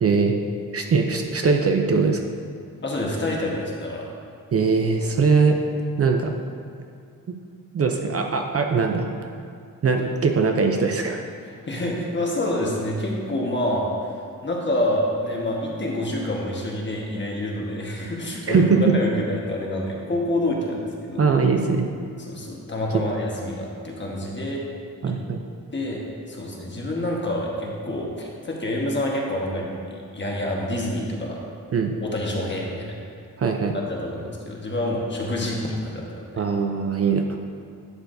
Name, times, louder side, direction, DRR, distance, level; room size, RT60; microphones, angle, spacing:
voice 1, 0.0-0.4 0.7-2.2 4.5-5.6 6.0-6.4 7.3-7.4 7.7-9.1 9.8-11.3 18.5-18.9 21.2-21.9 22.9-23.0 25.0-25.4 31.7-31.9 33.4-33.7 36.4-37.4, right 5 dB, 45° right, 4 dB, 0.5 m, -21 dB
voice 2, 2.8-4.1 11.4-14.1 14.4-21.4 22.2-24.6 25.1-25.2 25.7-26.0 26.3-31.4 32.0-33.0 33.9-36.4, left 1 dB, 30° left, -2 dB, 1.3 m, -27 dB
11.5 x 6.8 x 2.6 m, 2.3 s
wide cardioid pair, 125°, 35 cm